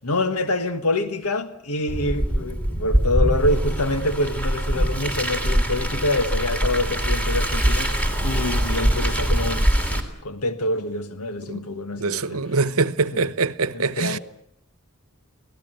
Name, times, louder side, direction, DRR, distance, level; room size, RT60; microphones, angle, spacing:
voice 1, 0.0-12.4 13.1-13.3 13.7-14.2, left 2 dB, 85° left, 1.5 m, -26 dB
Car, 1.9-10.0, right 1 dB, 5° left, 3.4 m, -23 dB
voice 2, 12.0-14.2, right 4 dB, 75° right, 1.0 m, -24 dB
26.0 x 18.0 x 9.1 m
head